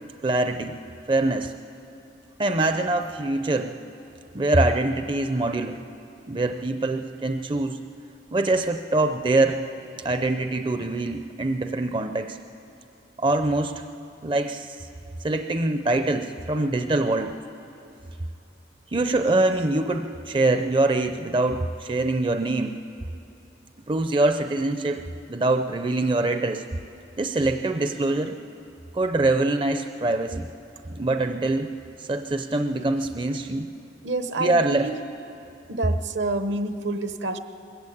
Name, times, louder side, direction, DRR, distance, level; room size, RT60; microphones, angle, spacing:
voice 1, 0.2-0.8 1.1-1.5 2.4-3.8 4.3-5.8 6.3-7.8 8.3-9.6 10.0-12.4 13.2-13.7 14.2-14.9 15.2-17.4 18.9-22.8 23.9-25.0 25.3-26.6 27.2-28.4 28.9-30.5 30.9-31.7 32.0-33.7 34.4-34.9, right 2 dB, 25° right, 7 dB, 0.5 m, -24 dB
voice 2, 34.0-34.9 35.7-37.4, right 2 dB, 70° right, 9 dB, 1.0 m, -28 dB
21.0 x 15.0 x 8.6 m, 2.8 s
head